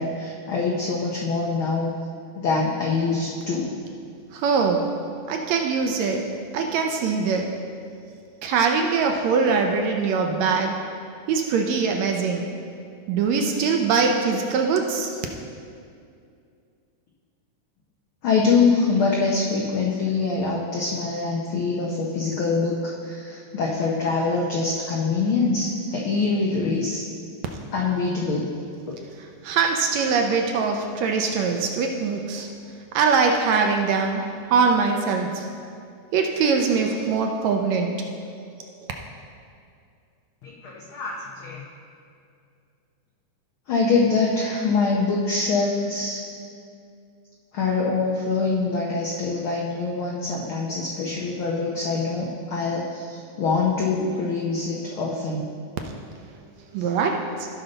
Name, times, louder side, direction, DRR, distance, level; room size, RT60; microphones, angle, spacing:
voice 1, 0.0-1.9 2.3-3.7 18.2-27.0 27.7-28.4 40.4-41.6 43.7-46.2 47.5-55.4 56.8-56.9, left 4 dB, 80° left, -2 dB, 1.1 m, -24 dB
voice 2, 4.3-4.9 5.3-6.2 6.5-7.5 8.4-10.8 11.3-12.5 13.1-15.1 29.4-32.5 32.9-34.2 34.5-35.4 36.1-37.9 55.8-55.9 56.7-57.5, right 5 dB, 75° right, 3 dB, 1.7 m, -22 dB
15.0 x 5.5 x 4.0 m, 2.4 s
omnidirectional pair, 3.5 m